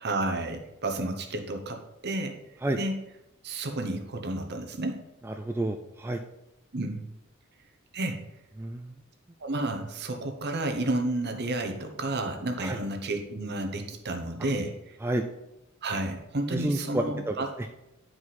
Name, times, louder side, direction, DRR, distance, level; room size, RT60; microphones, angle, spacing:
voice 1, 0.0-2.4 2.7-2.9 3.4-5.0 6.7-7.0 7.9-8.2 9.4-15.0 15.8-17.5, right 2 dB, 55° right, 5 dB, 1.0 m, -31 dB
voice 2, 5.2-6.2 8.6-8.9 12.6-12.8 15.0-15.2 16.5-17.7, right 1 dB, 10° right, 5 dB, 0.3 m, -30 dB
9.4 x 4.8 x 4.2 m, 0.91 s
head